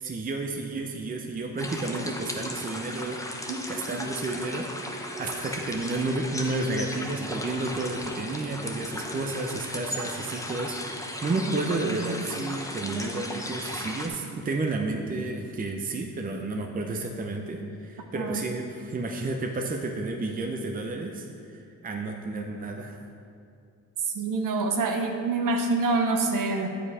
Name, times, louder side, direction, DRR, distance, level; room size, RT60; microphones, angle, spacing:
voice 1, 0.0-21.3 21.5-23.0, right 2 dB, 25° right, 2 dB, 0.6 m, -31 dB
sound 1, 1.6-14.1, left 1 dB, 10° left, 0.9 m, -36 dB
voice 2, 11.4-12.3 18.2-18.4 24.1-26.7, right 3 dB, 65° right, 3 dB, 0.9 m, -27 dB
7.9 x 4.9 x 4.9 m, 2.4 s
cardioid pair, 75°, 34 cm